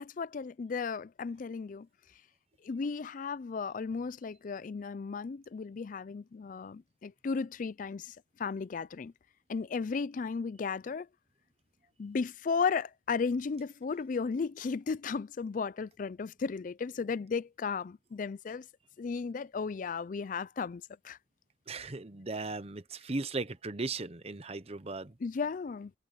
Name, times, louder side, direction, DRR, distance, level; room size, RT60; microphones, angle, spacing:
voice 1, 0.0-1.9 2.6-9.1 9.5-11.1 12.0-18.7 19.0-21.2 25.2-25.9, left 5 dB, 50° left, 0.4 m, -35 dB
voice 2, 21.7-25.1, right 3 dB, 35° right, 1.0 m, -37 dB
head